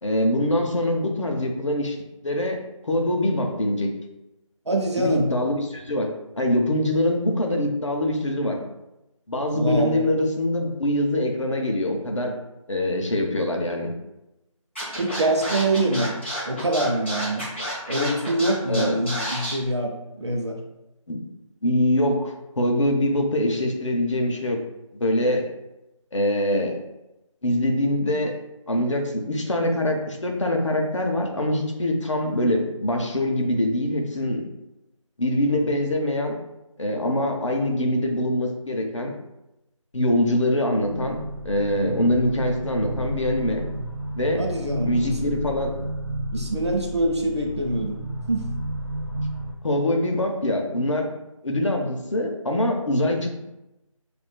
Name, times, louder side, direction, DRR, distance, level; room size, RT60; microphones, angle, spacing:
voice 1, 0.0-2.0 2.2-3.9 5.0-6.1 6.4-8.6 9.3-12.3 12.7-13.9 18.7-19.0 21.1-21.2 21.6-24.6 24.9-25.5 26.1-26.8 27.4-28.4 28.7-34.4 35.2-36.4 36.8-39.1 39.9-41.2 41.4-43.7 44.1-44.4 44.8-45.8 49.6-51.1 51.4-53.3, left 1 dB, 60° left, 2 dB, 0.8 m, -24 dB
voice 2, 4.7-5.3 9.5-10.0 15.0-16.1 16.4-17.5 17.9-20.6 44.4-45.4 46.3-48.0 48.3-48.5, right 1 dB, 50° right, 1 dB, 0.7 m, -25 dB
Scratching (performance technique), 14.7-19.5, equal, 20° left, 1.0 m, -30 dB
sound 1, 40.7-49.5, right 1 dB, 10° right, 0.7 m, -32 dB
6.8 x 2.5 x 2.2 m, 0.94 s
figure-of-eight pair, 175°, 18 cm